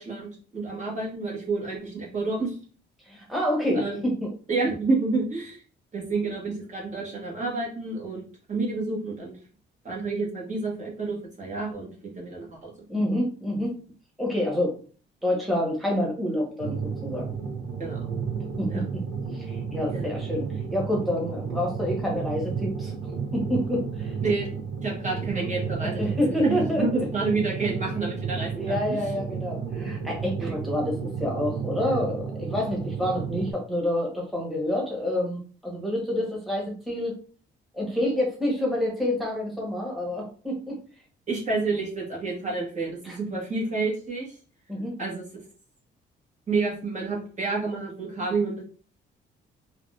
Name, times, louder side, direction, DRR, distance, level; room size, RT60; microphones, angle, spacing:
voice 1, 0.0-2.6 3.7-4.0 4.5-5.6 5.9-8.2 8.5-9.4 9.8-12.7 17.8-18.1 18.7-18.8 19.9-20.1 24.2-24.6 24.8-26.0 26.4-29.0 30.4-30.5 41.3-44.3 45.0-45.2 46.5-48.6, right 3 dB, 40° right, -2 dB, 1.2 m, -29 dB
voice 2, 3.1-4.3 12.9-13.7 14.2-14.7 15.2-17.3 18.6-19.0 19.3-22.9 23.3-24.2 25.8-27.1 28.6-37.2 37.7-40.8 43.0-43.2 44.7-45.0, left 1 dB, ahead, -3 dB, 1.2 m, -28 dB
sound 1, 16.6-33.5, right 6 dB, 80° right, 0.7 m, -32 dB
3.4 x 2.2 x 2.5 m, 0.40 s
cardioid pair, 90°, 20 cm